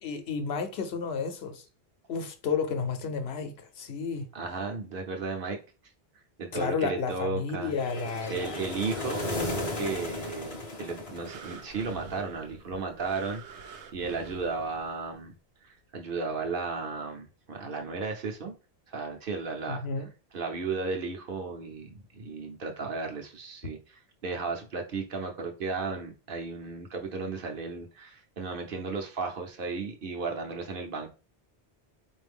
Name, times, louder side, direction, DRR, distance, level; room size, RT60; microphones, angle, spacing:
voice 1, 0.0-1.7 2.1-4.3 6.5-8.7 9.6-9.7 19.7-20.1, left 5 dB, 70° left, 0.9 m, -32 dB
voice 2, 4.3-5.6 6.4-7.7 8.3-15.3 15.6-18.5 18.9-19.8 20.3-31.1, right 4 dB, 55° right, 0.9 m, -34 dB
sound 1, 7.7-11.9, left 1 dB, 35° left, 0.7 m, -35 dB
sound 2, 11.3-15.2 15.8-15.9, right 4 dB, 90° right, 0.9 m, -46 dB
4.1 x 2.6 x 3.4 m
omnidirectional pair, 1.1 m